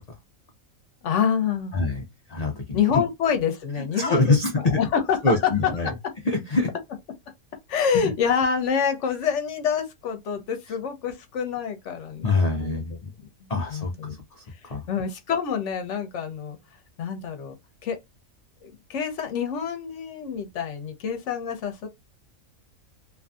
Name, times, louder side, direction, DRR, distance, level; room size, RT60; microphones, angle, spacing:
voice 1, 1.0-1.7 2.7-5.4 5.6-5.9 7.7-12.2 12.6-12.8 13.4-14.1 14.9-16.6 17.0-17.5 17.8-18.0 18.6-21.9, left 7 dB, 65° left, 0.9 m, -27 dB
voice 2, 1.7-2.8 3.8-4.8 5.2-5.9 6.2-6.7 7.9-8.1 12.2-13.1 13.5-14.8, left 3 dB, 85° left, 0.3 m, -25 dB
2.7 x 2.5 x 2.2 m
omnidirectional pair, 1.5 m